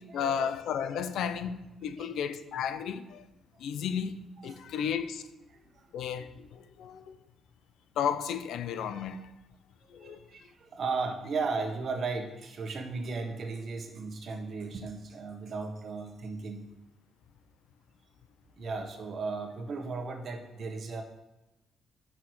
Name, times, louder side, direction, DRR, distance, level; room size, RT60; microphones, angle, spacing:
voice 1, 0.1-3.2 3.6-4.1 4.4-5.2 5.9-7.0 8.0-9.2 9.9-10.2, left 8 dB, 80° left, 0.7 m, -33 dB
voice 2, 5.5-6.1 9.8-16.7 18.6-21.0, right 4 dB, 55° right, 1.6 m, -36 dB
8.7 x 6.3 x 6.3 m
cardioid pair, 90°, 0 cm